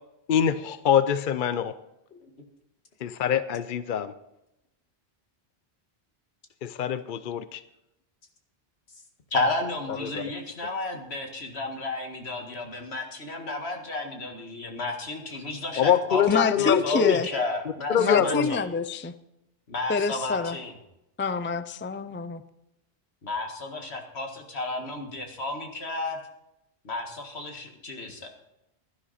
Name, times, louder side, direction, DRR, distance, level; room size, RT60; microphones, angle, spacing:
voice 1, 0.3-1.7 3.0-4.1 6.6-7.6 10.0-10.2 15.8-17.1 17.9-18.6, left 9 dB, 60° left, 13 dB, 0.7 m, -24 dB
voice 2, 9.3-18.7 19.7-20.7 23.2-26.2 26.8-28.3, left 2 dB, 80° left, 3 dB, 2.1 m, -32 dB
voice 3, 16.3-17.3 18.0-19.1 19.9-20.6 21.2-22.4, left 4 dB, 20° left, 12 dB, 0.3 m, -27 dB
16.0 x 11.5 x 4.2 m, 0.89 s
omnidirectional pair, 1.1 m